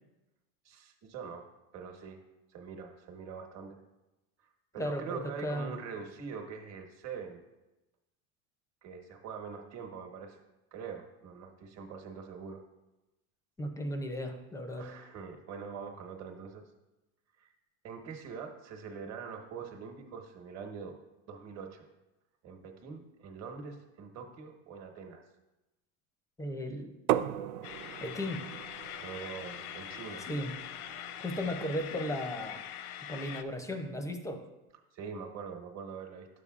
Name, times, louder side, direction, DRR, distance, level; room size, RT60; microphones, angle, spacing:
voice 1, 0.6-2.2 2.5-3.8 4.7-7.4 8.8-10.4 10.7-12.6 14.8-16.6 17.4-17.5 17.8-20.9 21.3-21.9 22.4-25.2 29.0-30.2 34.9-36.3, right 6 dB, 40° right, 4 dB, 1.3 m, -43 dB
voice 2, 4.8-5.7 13.6-14.9 26.4-26.9 28.0-28.4 30.3-30.5 31.2-32.6 33.1-34.4, left 1 dB, 10° left, 6 dB, 0.5 m, -35 dB
sound 1, 27.1-32.7, right 13 dB, 85° right, 0.5 m, -38 dB
sound 2, 27.6-33.4, left 10 dB, 90° left, 0.6 m, -43 dB
10.5 x 6.9 x 2.4 m, 1.0 s
supercardioid pair, 130°, 42 cm